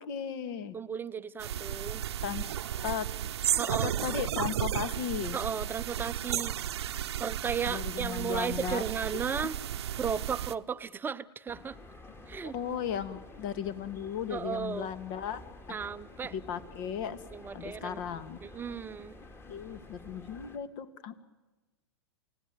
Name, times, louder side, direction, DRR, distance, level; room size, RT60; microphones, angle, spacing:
voice 1, 0.0-0.8 2.2-2.5 2.8-3.1 3.7-5.4 7.7-8.8 9.4-9.5 12.4-15.4 16.3-17.2 17.5-18.4 19.5-21.1, left 8 dB, 50° left, 12 dB, 2.1 m, -36 dB
voice 2, 0.7-2.0 3.6-4.2 5.3-6.5 7.2-9.6 10.0-11.8 12.3-12.6 14.3-14.9 15.7-16.3 17.3-19.2, right 6 dB, 15° right, 12 dB, 0.8 m, -35 dB
sound 1, 1.4-10.5, right 11 dB, 70° right, 0.9 m, -34 dB
sound 2, 11.5-20.6, left 2 dB, 15° left, 2.4 m, -50 dB
29.0 x 17.5 x 9.3 m, 1.2 s
hypercardioid pair, 110°, 14 cm